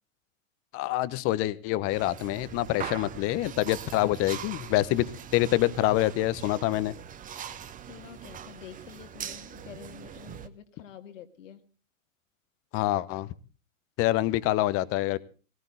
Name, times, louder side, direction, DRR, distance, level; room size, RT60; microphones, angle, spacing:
voice 1, 0.7-5.1 5.3-6.9 12.7-13.3 14.0-15.2, left 16 dB, 35° left, 0.9 m, -26 dB
sound 1, 1.9-10.5, right 8 dB, 20° right, 1.0 m, -42 dB
voice 2, 7.9-11.7, left 9 dB, 65° left, 2.2 m, -47 dB
18.5 x 17.5 x 3.9 m
hypercardioid pair, 105°, 41 cm